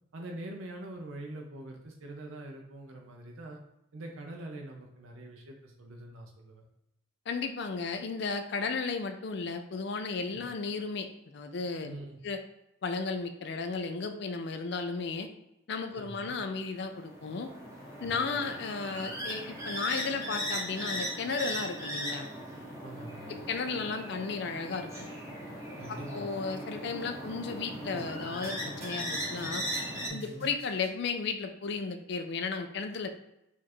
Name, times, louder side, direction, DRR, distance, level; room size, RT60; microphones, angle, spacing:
voice 1, 0.1-3.6 3.9-6.7 11.8-12.2 15.9-16.4 18.0-18.5 22.8-23.4 25.8-26.3 30.1-30.5, right 1 dB, 80° right, 1 dB, 0.6 m, -44 dB
voice 2, 7.3-11.1 11.3-11.9 12.2-12.4 12.8-15.3 15.7-17.5 18.0-22.3 23.5-25.1 25.9-29.6 30.1-33.1, left 4 dB, 55° left, 7 dB, 0.4 m, -34 dB
sound 1, 16.8-30.1, equal, 15° right, 0.8 m, -38 dB
sound 2, 28.0-28.1 28.4-30.9, right 2 dB, 35° right, 1.3 m, -55 dB
4.4 x 2.5 x 4.2 m, 0.86 s
head